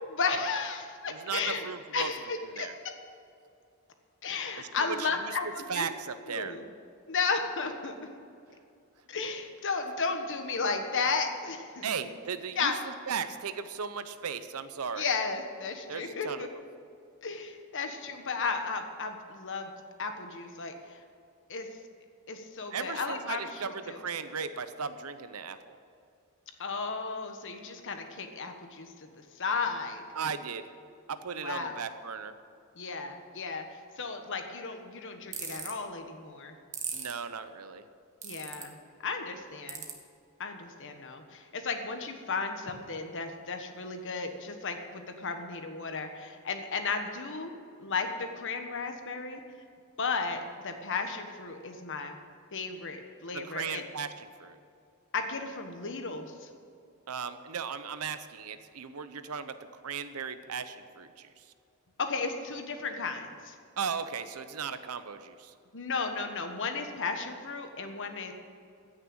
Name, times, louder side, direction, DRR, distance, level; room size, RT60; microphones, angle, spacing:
voice 1, 0.0-1.7 1.9-2.9 4.2-5.9 6.3-6.7 7.1-7.9 9.1-11.9 12.5-12.8 14.9-16.5 17.2-19.7 20.0-21.0 21.5-21.7 22.3-24.0 26.6-30.0 31.4-31.8 32.8-33.6 34.0-36.6 38.2-38.8 39.0-39.9 40.4-49.4 50.0-52.2 52.5-53.8 55.1-56.5 62.0-63.5 65.7-68.3, left 4 dB, 60° left, 6 dB, 1.3 m, -34 dB
voice 2, 1.1-2.1 2.5-2.7 4.6-5.4 5.7-6.6 11.8-15.1 15.9-16.4 22.7-25.8 30.1-30.7 31.1-32.3 36.9-37.8 53.3-54.6 57.1-61.4 63.8-65.5, right 6 dB, 90° right, 11 dB, 0.8 m, -37 dB
sound 1, 35.3-35.7 36.7-37.1 38.2-38.6 39.7-39.9, right 7 dB, 35° right, 1.5 m, -36 dB
15.0 x 6.6 x 8.8 m, 2.4 s
head